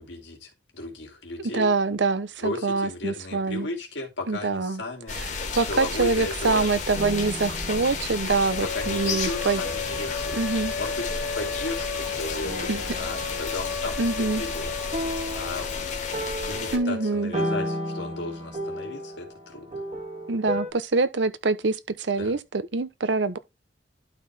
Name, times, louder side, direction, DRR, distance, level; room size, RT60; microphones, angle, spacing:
voice 1, 0.0-1.7 2.4-5.2 5.6-6.7 7.7-7.9 8.6-11.1 11.3-14.7 15.0-15.9 16.3-19.8 22.2-22.4, left 2 dB, 85° left, 2.9 m, -35 dB
voice 2, 1.5-3.7 4.3-4.8 5.2-5.3 5.5-9.6 10.3-10.7 12.7-12.8 14.0-14.4 16.7-17.3 20.3-23.4, right 3 dB, 85° right, 0.8 m, -25 dB
sound 1, 5.1-16.8, left 4 dB, 45° left, 1.8 m, -32 dB
sound 2, 7.0-8.7 9.6-10.0 11.1-11.9 12.4-13.7 14.9-20.7, equal, 40° right, 1.7 m, -34 dB
sound 3, 8.5-17.4, left 5 dB, 65° left, 1.3 m, -35 dB
12.0 x 4.6 x 3.4 m
head